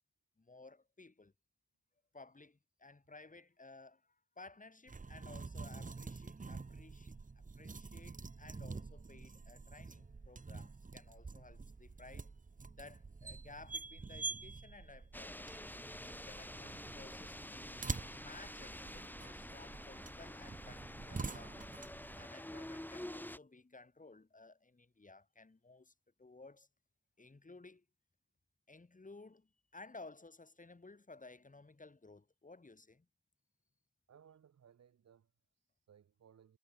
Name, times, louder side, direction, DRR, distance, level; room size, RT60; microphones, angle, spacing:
voice 1, 0.4-1.3 2.1-7.2 7.5-12.3 12.8-15.5 16.0-21.7 22.2-25.9 26.2-26.7 27.2-27.9 28.7-33.1, left 3 dB, 25° left, 6.9 m, -57 dB
sound 1, 4.9-22.3, right 4 dB, 25° right, 1.5 m, -47 dB
sound 2, 15.1-23.4, left 1 dB, 5° left, 2.1 m, -48 dB
voice 2, 34.1-36.6, right 8 dB, 60° right, 4.3 m, -64 dB
hypercardioid pair, 45°, 29 cm